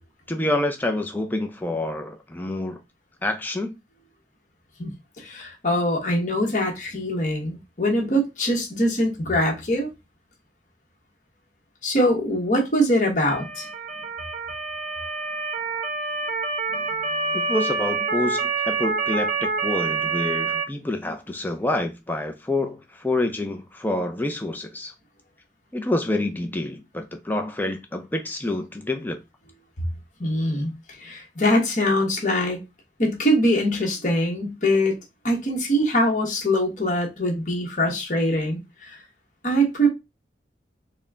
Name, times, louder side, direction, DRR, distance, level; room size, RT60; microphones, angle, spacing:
voice 1, 0.3-2.8 3.2-3.8 17.3-24.9 25.7-29.2, left 1 dB, 10° left, 0.5 m, -27 dB
voice 2, 5.2-9.9 11.8-13.7 16.7-16.8 30.2-30.7 31.0-32.6 33.0-35.0 35.2-39.0 39.4-39.9, equal, 45° left, 1.3 m, -23 dB
Motor vehicle (road) / Siren, 13.2-20.6, right 4 dB, 45° right, 0.5 m, -27 dB
4.1 x 2.2 x 3.6 m
head